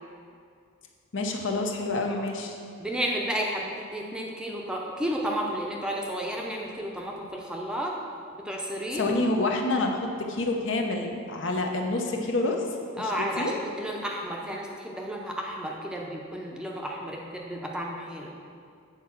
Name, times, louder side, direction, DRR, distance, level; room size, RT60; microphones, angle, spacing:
voice 1, 1.1-2.6 8.9-12.6 13.0-13.5, left 2 dB, 65° left, 2 dB, 0.8 m, -28 dB
voice 2, 2.8-7.9 8.4-9.1 13.0-18.3, equal, 5° right, -1 dB, 0.6 m, -32 dB
8.4 x 4.7 x 5.9 m, 2.3 s
head